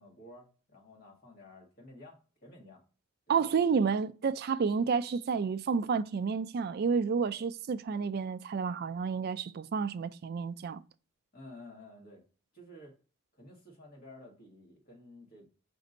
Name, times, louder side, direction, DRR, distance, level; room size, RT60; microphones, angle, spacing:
voice 1, 0.0-2.8 3.3-3.6 11.3-12.2 12.5-13.0 13.3-15.5, left 1 dB, 45° left, 1.7 m, -52 dB
voice 2, 3.3-10.8, right 5 dB, 45° right, 0.3 m, -30 dB
5.2 x 2.6 x 3.9 m
head